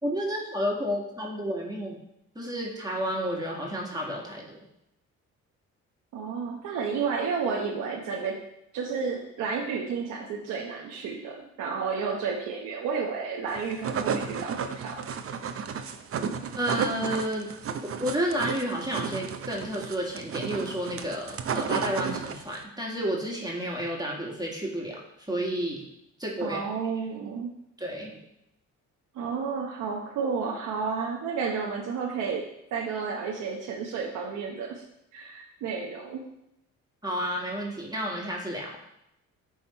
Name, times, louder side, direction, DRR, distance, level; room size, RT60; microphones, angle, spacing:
voice 1, 0.0-2.0 2.3-4.6 16.5-17.5 18.0-25.0 25.3-25.9 26.2-26.6 27.8-28.2 37.0-38.8, equal, 15° right, -2 dB, 1.7 m, -31 dB
voice 2, 6.1-8.4 8.7-15.2 26.4-27.5 29.1-34.8 35.1-36.2, right 5 dB, 90° right, -1 dB, 1.0 m, -31 dB
sound 1, 13.5-22.6, right 6 dB, 50° right, 0.7 m, -33 dB
10.5 x 3.6 x 4.3 m, 0.82 s
cardioid pair, 90°, 30 cm